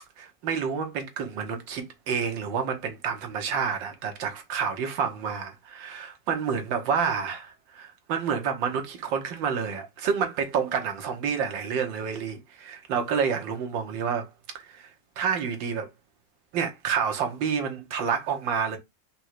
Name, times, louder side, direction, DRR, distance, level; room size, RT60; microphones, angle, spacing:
voice 1, 0.2-14.3 14.5-14.9 15.2-15.9 16.5-18.8, right 6 dB, 85° right, 1.7 m, -29 dB
5.2 x 2.1 x 4.4 m
omnidirectional pair, 2.0 m